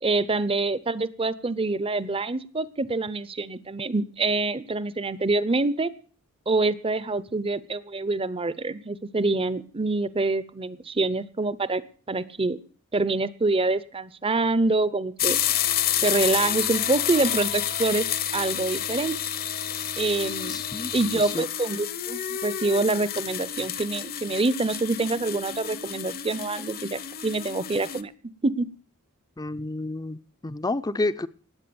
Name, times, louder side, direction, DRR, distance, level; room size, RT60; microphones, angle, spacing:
voice 1, 0.0-5.9 6.5-11.8 12.1-12.6 12.9-15.4 16.0-18.1 18.3-19.2 20.0-20.6 20.9-28.1 28.4-28.7, right 3 dB, 25° right, 17 dB, 0.7 m, -26 dB
sound 1, 15.2-28.0, left 10 dB, 45° left, 0.9 m, -29 dB
voice 2, 20.5-20.9 21.2-21.4 29.4-31.3, left 2 dB, 15° left, 15 dB, 0.6 m, -30 dB
19.0 x 8.6 x 7.0 m, 0.44 s
head